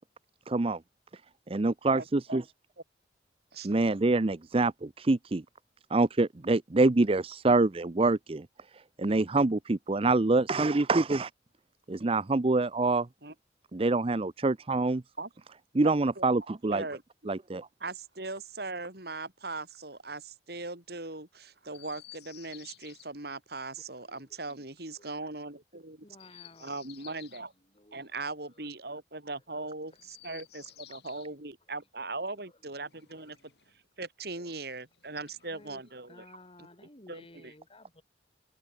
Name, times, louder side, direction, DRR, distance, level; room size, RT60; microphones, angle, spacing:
voice 1, 0.5-0.8 1.5-2.4 3.6-5.4 5.9-8.5 8.7-11.3 11.9-13.1 13.7-15.0 15.7-16.8 17.3-17.7, right 2 dB, 30° right, 0.6 m, -26 dB
voice 2, 1.9-2.4 3.5-3.7 13.2-13.3 15.2-15.3 16.2-16.3 16.7-17.0 17.8-26.0 26.6-27.5 27.9-33.4 34.0-36.3 36.6-36.7 37.1-37.5, right 3 dB, 60° right, 4.6 m, -39 dB
Chirp tweet, 21.7-23.1 26.1-27.5 29.9-31.3 32.7-33.8 34.9-35.8, left 14 dB, 65° left, 7.9 m, -53 dB
voice 3, 26.0-26.7 27.8-28.0 35.5-35.8 36.1-38.0, left 2 dB, 30° left, 4.4 m, -54 dB
head